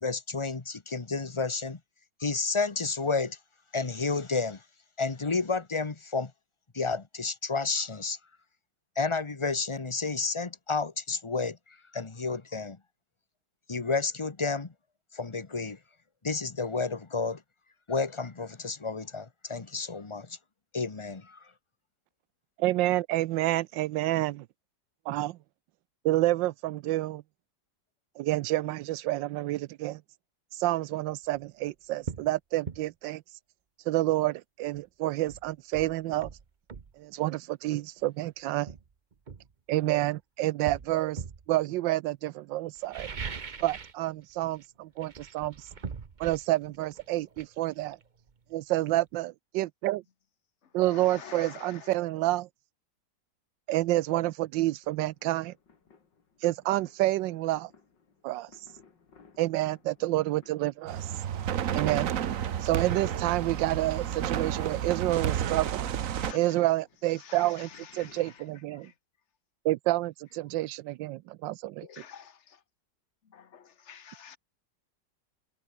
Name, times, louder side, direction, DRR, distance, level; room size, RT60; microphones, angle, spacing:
voice 1, 0.0-1.8 2.2-3.4 3.7-4.6 5.0-6.3 6.7-8.2 9.0-12.8 13.7-14.7 15.1-15.8 16.2-17.4 17.9-20.4 20.7-21.5, left 4 dB, 20° left, 0.8 m, -31 dB
voice 2, 22.6-24.5 25.1-25.4 26.0-27.2 28.2-30.0 30.5-33.2 33.9-36.3 37.0-38.7 39.7-43.1 43.6-45.7 46.2-48.0 48.5-50.0 50.7-52.5 53.7-55.5 56.4-57.7 58.2-58.7 59.4-61.1 61.7-62.1 62.6-65.9 66.3-67.7 67.9-68.9 69.6-71.8, right 16 dB, 85° right, 1.3 m, -29 dB
sound 1, 31.2-31.4 32.0-32.3 32.6-32.8 34.7-34.8 35.3-36.9 38.0-38.1 38.7-40.1 40.6-41.5 42.7-44.0 44.3-44.6 45.0-48.5 48.8-48.9, right 5 dB, 35° right, 0.9 m, -41 dB
voice 3, 50.6-52.0 66.1-66.7 67.0-69.0 71.8-72.6 73.2-74.4, left 7 dB, 40° left, 1.5 m, -49 dB
sound 2, 54.8-68.6, left 5 dB, 75° left, 3.3 m, -59 dB
sound 3, 60.9-66.3, right 9 dB, 55° right, 1.2 m, -31 dB
omnidirectional pair, 1.9 m